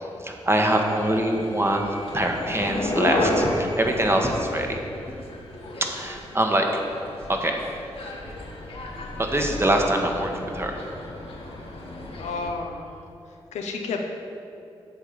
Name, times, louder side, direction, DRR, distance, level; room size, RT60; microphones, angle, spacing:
voice 1, 0.2-1.9 2.1-4.8 5.8-6.7 7.3-7.7 9.2-10.8, right 1 dB, 20° right, 2 dB, 1.2 m, -24 dB
sound 1, 0.6-12.5, left 1 dB, 60° left, 1.4 m, -32 dB
voice 2, 12.2-12.9 13.5-14.0, left 4 dB, 85° left, 3 dB, 0.7 m, -30 dB
8.2 x 3.8 x 6.8 m, 2.7 s
supercardioid pair, 40°, 11 cm